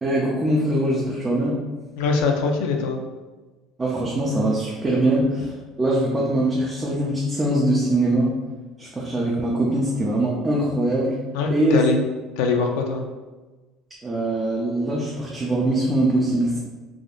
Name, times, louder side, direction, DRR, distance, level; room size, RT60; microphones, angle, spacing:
voice 1, 0.0-1.6 3.8-5.5 5.8-8.3 8.8-11.2 11.5-11.8 14.0-16.6, right 1 dB, 15° right, -4 dB, 0.4 m, -22 dB
voice 2, 2.0-3.0 11.3-12.0 12.4-13.1, left 4 dB, 85° left, 2 dB, 0.4 m, -22 dB
3.4 x 2.5 x 2.3 m, 1.2 s
cardioid pair, 165°, 0 cm